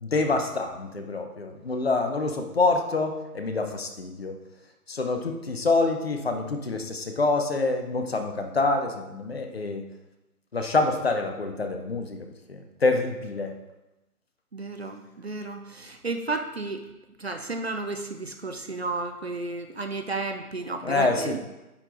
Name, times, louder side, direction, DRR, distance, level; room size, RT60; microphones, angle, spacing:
voice 1, 0.0-4.4 4.9-9.9 10.5-13.6 20.8-21.4, left 3 dB, 40° left, 6 dB, 0.8 m, -26 dB
voice 2, 14.5-16.8 17.2-21.4, right 3 dB, 45° right, 6 dB, 0.6 m, -32 dB
9.9 x 4.4 x 3.9 m, 0.97 s
figure-of-eight pair, 145°, 46 cm